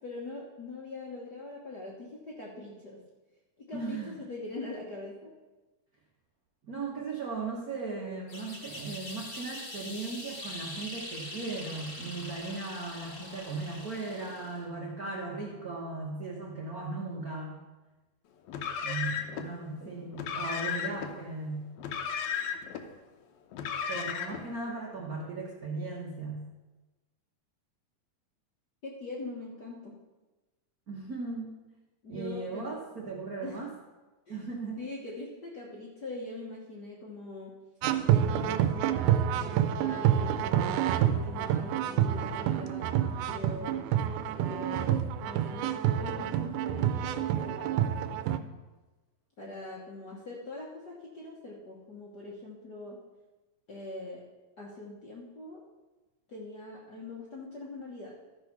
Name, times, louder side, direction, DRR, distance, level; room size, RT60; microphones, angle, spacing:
voice 1, 0.0-3.0 3.7-5.3 19.3-19.5 19.8-20.1 28.8-29.9 32.0-32.7 33.4-33.6 34.3-34.5 34.8-37.5 38.0-43.8 44.3-47.9 49.4-53.0 53.7-54.2 54.6-55.6 56.3-58.1, left 2 dB, 50° left, -3 dB, 1.2 m, -42 dB
voice 2, 3.7-4.1 6.7-17.6 18.8-21.7 23.9-26.4 30.9-31.6 32.1-33.7 34.3-34.8, right 3 dB, 65° right, -2 dB, 0.9 m, -37 dB
sound 1, 8.3-14.6, left 1 dB, 35° left, 0.9 m, -43 dB
Car, 18.5-19.5 20.1-21.1 21.8-22.8 23.5-24.5, left 7 dB, 75° left, 2.0 m, -34 dB
sound 2, 37.8-48.4, right 10 dB, 85° right, 2.0 m, -28 dB
13.5 x 5.5 x 5.9 m, 1.2 s
omnidirectional pair, 3.6 m